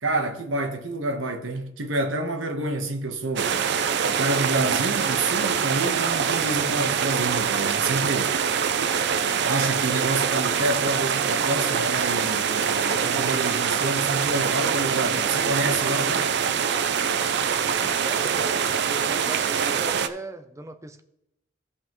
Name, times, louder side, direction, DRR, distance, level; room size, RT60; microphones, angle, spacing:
voice 1, 0.0-3.6 4.1-8.4 9.4-16.3, right 2 dB, 80° right, 1.2 m, -28 dB
sound 1, 3.4-20.1, right 7 dB, 60° right, 0.5 m, -24 dB
voice 2, 17.8-21.0, right 2 dB, 15° right, 0.6 m, -40 dB
15.5 x 5.5 x 3.1 m
head